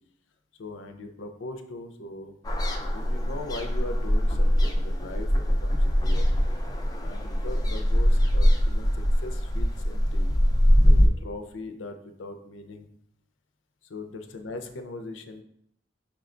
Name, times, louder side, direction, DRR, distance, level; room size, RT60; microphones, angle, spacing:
voice 1, 0.6-2.4 2.9-5.3 5.6-6.3 7.0-10.3 10.8-12.9 13.8-15.4, left 2 dB, 85° left, 7 dB, 0.5 m, -40 dB
sound 1, 2.4-11.1, equal, 20° left, 0.4 m, -22 dB
5.9 x 2.2 x 3.7 m, 0.72 s
head